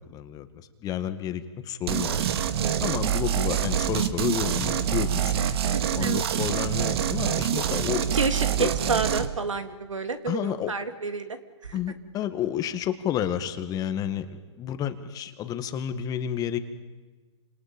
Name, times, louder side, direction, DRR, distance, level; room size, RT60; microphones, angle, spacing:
voice 1, 0.1-0.5 0.8-5.3 5.9-8.0 8.6-8.7 10.3-10.7 11.7-16.6, left 9 dB, 25° left, 9 dB, 1.8 m, -31 dB
sound 1, 1.9-9.3, right 9 dB, 55° right, 1.9 m, -26 dB
voice 2, 2.6-2.9 5.7-6.3 7.6-7.7 8.1-11.8, right 4 dB, 85° right, 8 dB, 2.5 m, -30 dB
sound 2, 4.6-6.5, left 6 dB, 10° left, 2.8 m, -41 dB
29.0 x 27.0 x 5.3 m, 1.3 s
hypercardioid pair, 125°, 16 cm